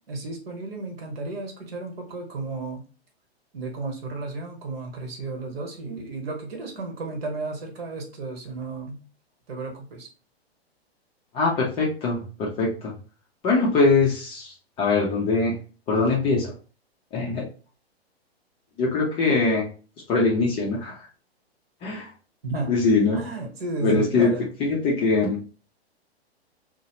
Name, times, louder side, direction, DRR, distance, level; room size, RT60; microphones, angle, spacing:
voice 1, 0.1-2.8 3.5-9.0 9.5-10.1 22.4-22.8 23.1-24.5, right 3 dB, 65° right, 3 dB, 1.1 m, -33 dB
voice 2, 11.3-12.9 13.4-15.5 15.9-16.5 17.1-17.4 18.8-19.7 20.1-21.1 21.8-22.1 22.7-23.2 23.8-24.3 24.6-25.4, left 3 dB, 15° left, -3 dB, 0.4 m, -22 dB
2.7 x 2.0 x 2.9 m, 0.37 s
figure-of-eight pair, 115°, 32 cm